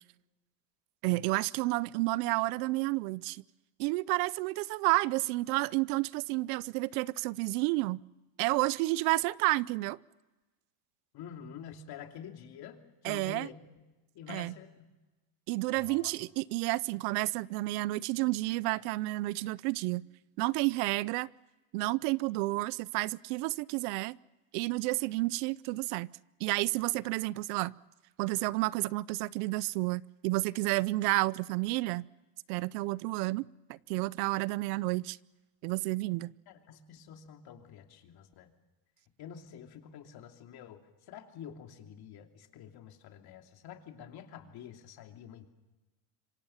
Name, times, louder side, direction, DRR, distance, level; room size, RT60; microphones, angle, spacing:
voice 1, 1.0-3.4 3.8-8.0 8.4-10.0 13.0-13.5 14.3-14.5 15.5-20.0 20.4-21.3 21.7-24.2 24.5-26.1 26.4-27.7 28.2-32.1 32.5-33.4 33.7-35.2 35.6-36.3, right 21 dB, 75° right, 21 dB, 0.7 m, -30 dB
voice 2, 11.1-13.5 14.1-14.9 15.8-16.1 36.5-38.5 39.2-45.5, left 8 dB, 50° left, 4 dB, 2.9 m, -48 dB
26.5 x 24.0 x 5.8 m, 1.1 s
supercardioid pair, 125°, 48 cm